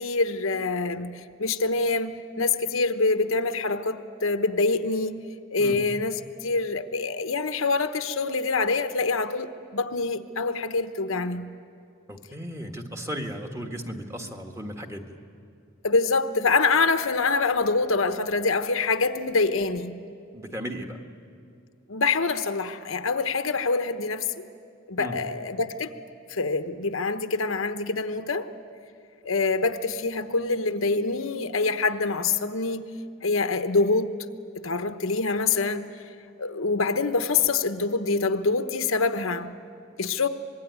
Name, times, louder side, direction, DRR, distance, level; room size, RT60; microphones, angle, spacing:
voice 1, 0.0-5.2 5.5-11.5 15.8-20.0 21.9-24.4 24.9-25.9 26.3-28.5 29.2-32.8 33.2-34.1 34.6-35.9 36.4-39.5 40.0-40.3, left 3 dB, 75° left, 1.0 m, -25 dB
voice 2, 12.1-15.2 20.3-21.0 25.0-25.2, equal, 15° right, 1.6 m, -35 dB
25.0 x 21.5 x 9.5 m
head